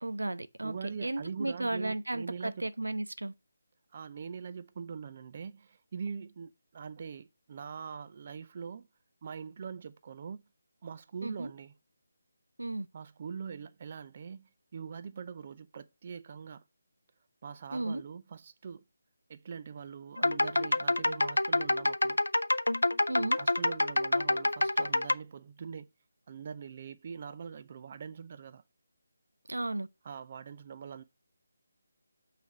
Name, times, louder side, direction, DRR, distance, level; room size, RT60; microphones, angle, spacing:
voice 1, 0.0-0.7 1.0-3.3 11.2-11.5 12.6-12.9 17.7-18.0 23.1-23.4 29.5-29.9, right 2 dB, 85° right, 0.5 m, -34 dB
voice 2, 0.6-2.7 3.9-8.9 9.2-10.4 10.8-11.7 12.9-16.6 17.4-18.8 19.3-22.2 23.3-25.9 26.3-28.6 30.0-31.0, right 6 dB, 40° right, 0.5 m, -43 dB
sound 1, 20.2-25.1, left 2 dB, 90° left, 0.3 m, -27 dB
6.2 x 3.4 x 5.5 m
figure-of-eight pair, 160°, 0 cm